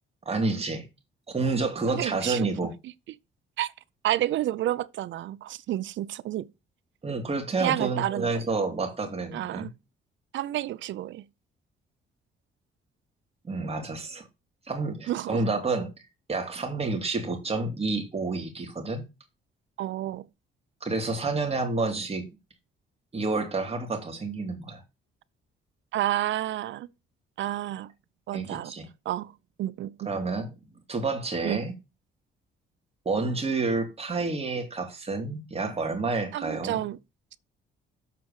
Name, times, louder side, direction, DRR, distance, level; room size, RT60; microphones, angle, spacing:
voice 1, 0.3-0.9 1.3-2.7 7.0-9.7 13.4-14.2 14.7-15.9 16.3-19.0 20.8-22.3 23.1-24.8 28.3-28.9 30.0-30.5 30.9-31.7 33.0-36.8, right 3 dB, 30° right, 2.8 m, -29 dB
voice 2, 1.9-2.5 3.6-3.7 4.0-6.5 7.6-8.4 9.3-9.7 10.3-11.2 15.1-15.4 19.8-20.3 25.9-26.9 27.4-27.9 28.3-28.7 29.1-29.3 29.6-30.1 31.4-31.6 36.3-37.0, right 13 dB, 70° right, 0.6 m, -30 dB
7.6 x 4.5 x 6.7 m
cardioid pair, 90°, 20 cm